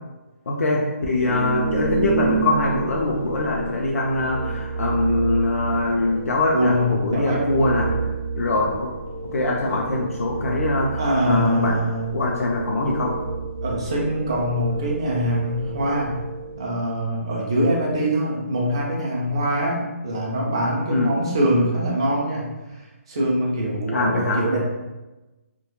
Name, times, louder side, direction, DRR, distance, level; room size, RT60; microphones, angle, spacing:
voice 1, 0.5-7.9 8.4-8.9 9.2-11.0 11.2-11.8 12.1-13.2 20.9-21.1 23.9-24.4, left 2 dB, 75° left, -2 dB, 0.4 m, -23 dB
sound 1, 1.1-16.9, right 4 dB, 60° right, 0.7 m, -30 dB
voice 2, 6.5-7.4 11.0-12.0 13.6-16.2 16.6-19.8 20.0-22.8 23.1-24.6, equal, 20° right, -3 dB, 0.3 m, -23 dB
2.2 x 2.1 x 2.8 m, 1.1 s
hypercardioid pair, 180°, 8 cm